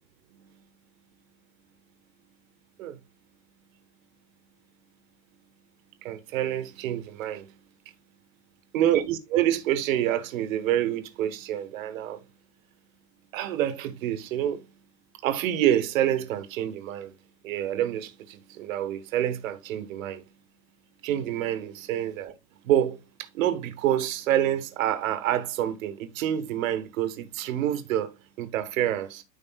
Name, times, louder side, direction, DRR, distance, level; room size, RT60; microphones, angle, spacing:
voice 1, 6.0-7.6 8.7-12.2 13.3-14.7 15.2-17.1 17.4-20.2 21.0-22.3 22.6-29.2, right 11 dB, 50° right, 1.6 m, -27 dB
13.5 x 5.1 x 2.4 m
supercardioid pair, 165°, 50 cm